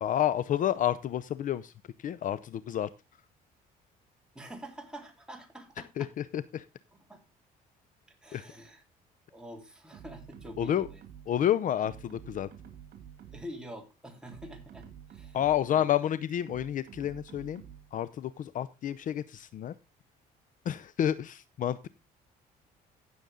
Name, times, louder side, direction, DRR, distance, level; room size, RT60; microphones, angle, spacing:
voice 1, 0.0-1.7 2.0-2.9 6.0-6.7 8.3-8.4 10.6-10.9 11.3-12.5 15.3-17.6 17.9-19.7 20.7-21.9, left 11 dB, 50° left, 16 dB, 0.6 m, -30 dB
voice 2, 4.3-5.9 7.1-7.2 8.2-8.8 9.3-11.0 13.3-15.4 15.7-15.9, equal, 5° right, 1 dB, 3.8 m, -46 dB
sound 1, 9.9-11.4 11.8-13.6 14.1-15.8 16.5-18.0, right 9 dB, 60° right, 2.3 m, -50 dB
16.0 x 7.0 x 3.7 m, 0.25 s
cardioid pair, 110°, 17 cm